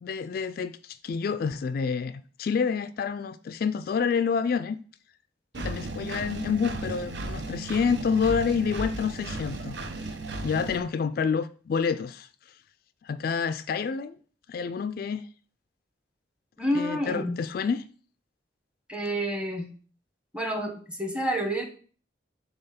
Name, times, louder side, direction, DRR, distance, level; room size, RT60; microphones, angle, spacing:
voice 1, 0.0-4.8 5.6-9.8 10.4-12.5 13.0-14.2 14.5-15.3 16.7-17.8, left 6 dB, 55° left, 0.3 m, -28 dB
Engine, 5.5-10.8, right 2 dB, 70° right, 0.9 m, -35 dB
voice 2, 16.6-17.4 18.9-19.7 20.3-21.6, equal, 5° right, 1.0 m, -29 dB
5.5 x 4.1 x 5.7 m
head